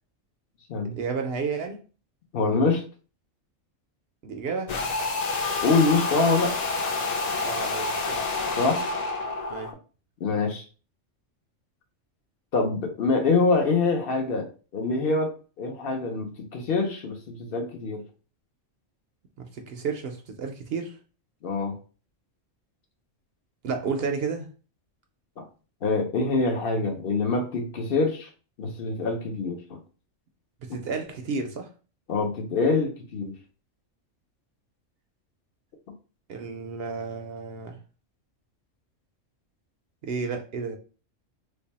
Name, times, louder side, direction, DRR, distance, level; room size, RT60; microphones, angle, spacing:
voice 1, 0.8-1.8 4.2-4.7 7.4-8.2 9.5-9.7 19.4-21.0 23.6-24.5 30.6-31.7 36.3-37.8 40.0-40.8, right 5 dB, 60° right, 0.7 m, -32 dB
voice 2, 2.3-2.8 5.6-6.6 8.5-8.8 10.2-10.6 12.5-18.0 21.4-21.7 25.4-25.5 25.8-28.3 28.6-29.8 30.7-30.8 32.1-33.3, left 3 dB, 55° left, 0.8 m, -25 dB
sound 1, 4.7-9.7, left 3 dB, 75° left, 0.3 m, -28 dB
3.3 x 2.2 x 4.0 m
omnidirectional pair, 1.3 m